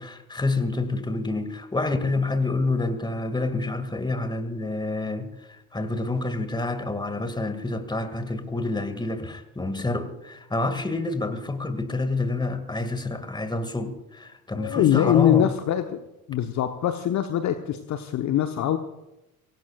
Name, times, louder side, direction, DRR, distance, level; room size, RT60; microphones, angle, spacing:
voice 1, 0.0-15.5, left 2 dB, 10° left, 2.2 m, -28 dB
voice 2, 14.6-16.0 16.3-18.8, left 11 dB, 40° left, 1.1 m, -23 dB
24.5 x 18.0 x 2.5 m
figure-of-eight pair, 60°, 44 cm